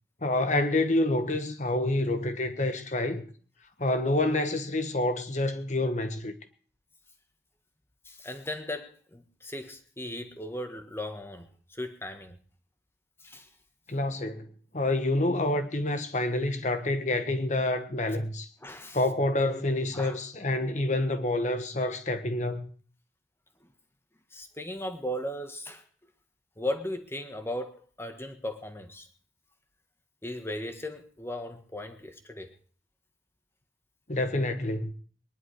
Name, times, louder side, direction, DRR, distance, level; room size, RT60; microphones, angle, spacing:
voice 1, 0.2-3.2 3.8-6.3 13.9-14.5 14.7-18.5 18.9-22.7 34.1-34.9, left 2 dB, 45° left, 1.6 m, -27 dB
voice 2, 8.0-12.4 13.2-13.5 18.6-19.0 19.9-20.2 24.3-25.8 26.6-29.1 30.2-32.5, left 1 dB, 15° left, 1.5 m, -37 dB
21.5 x 11.0 x 4.8 m
head